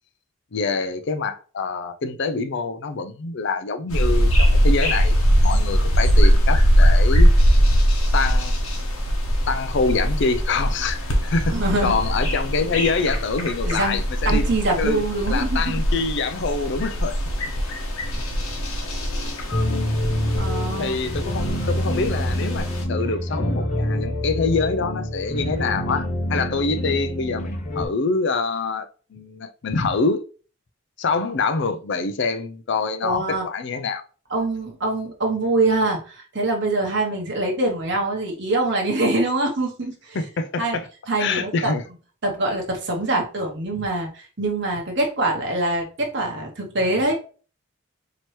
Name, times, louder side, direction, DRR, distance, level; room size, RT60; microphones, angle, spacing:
voice 1, 0.5-5.1 5.4-7.3 8.1-8.5 9.5-14.5 14.8-15.0 15.3-17.2 20.8-30.2 31.0-34.0 40.1-40.9 41.2-41.8, left 4 dB, 55° left, 0.4 m, -25 dB
sound 1, 3.9-22.8, equal, 85° left, 1.0 m, -21 dB
voice 2, 11.5-11.9 13.6-15.7 20.4-21.0 33.0-33.5 34.3-40.2 40.6-40.8 41.1-41.7 42.2-47.1, right 2 dB, 55° right, 0.9 m, -24 dB
sound 2, 19.5-27.8, left 1 dB, 35° left, 0.8 m, -26 dB
4.4 x 2.9 x 3.1 m
head